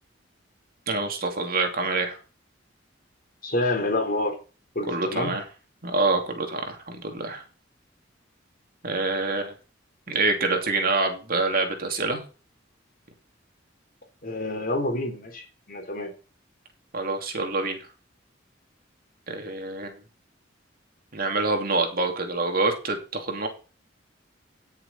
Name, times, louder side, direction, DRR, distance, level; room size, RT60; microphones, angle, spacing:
voice 1, 0.9-2.2 4.9-5.4 5.8-7.4 8.8-9.5 10.1-12.2 16.9-17.9 19.3-20.0 21.1-23.5, right 3 dB, 50° right, 4 dB, 2.8 m, -26 dB
voice 2, 3.4-4.4 4.7-5.3 14.2-16.1, left 2 dB, 50° left, 3 dB, 3.9 m, -28 dB
17.5 x 6.8 x 4.2 m, 0.34 s
head